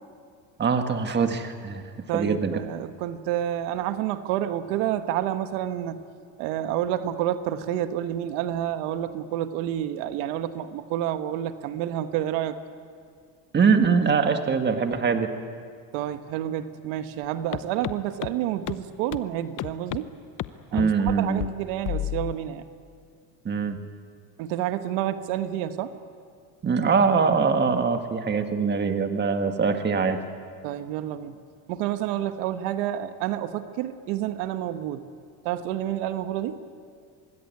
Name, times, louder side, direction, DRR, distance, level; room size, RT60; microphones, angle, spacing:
voice 1, 0.6-1.8 2.1-2.6 13.5-15.3 20.7-21.5 23.4-23.8 26.6-30.2, right 5 dB, 25° right, 7 dB, 1.7 m, -23 dB
voice 2, 2.1-6.0 6.4-12.6 15.9-20.1 20.7-22.6 24.4-25.9 30.6-31.4 31.7-35.1 35.4-36.6, right 11 dB, 85° right, 10 dB, 1.4 m, -29 dB
sound 1, 17.5-17.6 17.8-17.9 18.2-18.3 18.7-18.8 19.1-19.2 19.6-20.0 20.4-20.5 20.8-21.1 21.4-21.5 21.9-22.3, left 14 dB, 45° left, 0.9 m, -29 dB
25.0 x 20.5 x 9.7 m, 2.2 s
cardioid pair, 135°, 45 cm